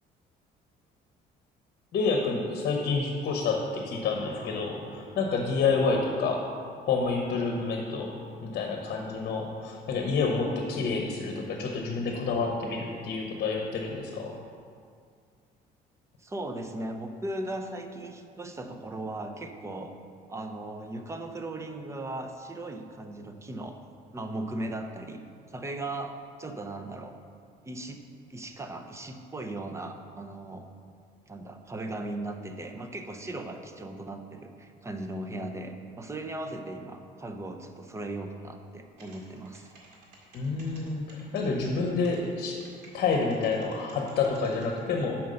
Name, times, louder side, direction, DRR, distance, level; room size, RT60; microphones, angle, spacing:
voice 1, 1.9-6.4 6.8-8.1 8.4-14.3 40.3-42.6 42.9-45.2, left 4 dB, 60° left, 1 dB, 0.9 m, -28 dB
voice 2, 16.2-19.9 20.3-23.8 24.1-25.2 25.5-27.2 27.6-28.0 28.3-30.7 31.3-39.7, right 2 dB, 15° right, 5 dB, 0.6 m, -37 dB
sound 1, 38.9-44.8, right 3 dB, 75° right, 2.0 m, -54 dB
5.8 x 5.3 x 6.4 m, 2.2 s
cardioid pair, 110°, 17 cm